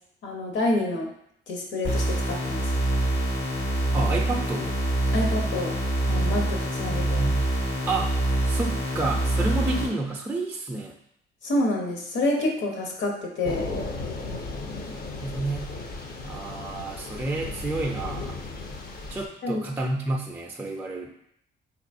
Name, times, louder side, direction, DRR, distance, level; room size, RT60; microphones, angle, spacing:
voice 1, 0.2-1.1 1.5-2.7 5.1-5.7 6.1-7.2 11.4-13.6 19.4-19.6, left 1 dB, 70° left, 0 dB, 1.0 m, -28 dB
sound 1, 1.8-9.8, right 1 dB, 85° left, 1.4 m, -25 dB
voice 2, 3.9-4.8 6.9-7.5 7.9-10.9 14.9-15.7 16.2-18.4 19.1-21.1, right 2 dB, 10° right, 0 dB, 0.4 m, -30 dB
Thunder / Rain, 13.4-19.3, left 3 dB, 50° left, 0.6 m, -35 dB
4.0 x 3.0 x 2.6 m, 0.72 s
cardioid pair, 90°, 20 cm